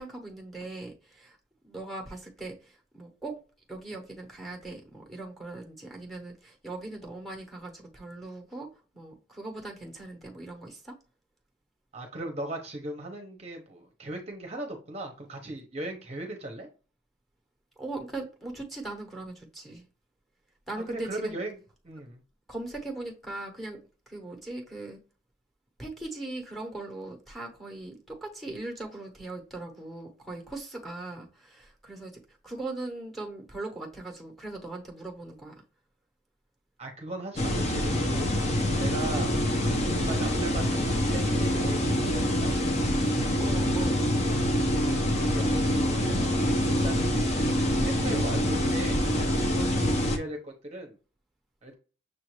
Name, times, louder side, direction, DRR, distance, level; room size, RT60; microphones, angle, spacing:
voice 1, 0.0-1.4 1.6-3.4 3.7-8.7 8.9-10.9 17.8-19.9 20.7-21.4 22.5-23.8 24.1-25.0 25.8-35.6 43.4-44.0, right 2 dB, ahead, 0.9 m, -39 dB
voice 2, 11.9-16.7 20.9-21.6 21.8-22.2 36.8-39.4 39.8-42.8 45.2-47.1 47.8-51.0 51.6-51.8, right 1 dB, 35° right, 0.7 m, -38 dB
sound 1, 37.4-50.2, equal, 35° left, 0.7 m, -26 dB
6.4 x 2.5 x 3.0 m
head